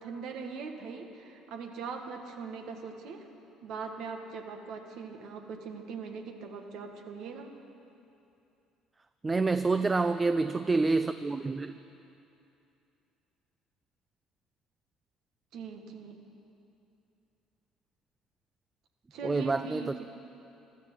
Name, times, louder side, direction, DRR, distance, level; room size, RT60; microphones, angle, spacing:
voice 1, 0.0-3.2 3.6-7.5 15.5-16.2 19.1-20.0, right 5 dB, 65° right, 4 dB, 1.6 m, -41 dB
voice 2, 9.2-11.8 19.2-19.9, right 3 dB, 25° right, 11 dB, 0.5 m, -27 dB
15.0 x 12.0 x 7.5 m, 2.8 s
hypercardioid pair, 65°, 0 cm